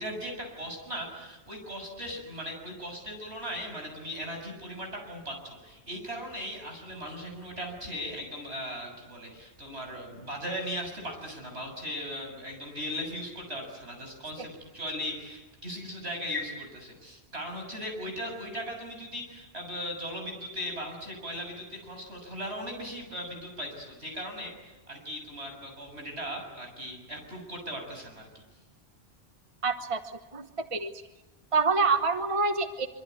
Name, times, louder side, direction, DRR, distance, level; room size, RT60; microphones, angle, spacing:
voice 1, 0.0-28.3, equal, 80° right, 2 dB, 7.4 m, -38 dB
voice 2, 29.6-30.0 30.3-30.9 31.5-32.9, right 4 dB, 30° right, 8 dB, 1.2 m, -26 dB
25.0 x 25.0 x 9.5 m, 1.1 s
omnidirectional pair, 1.1 m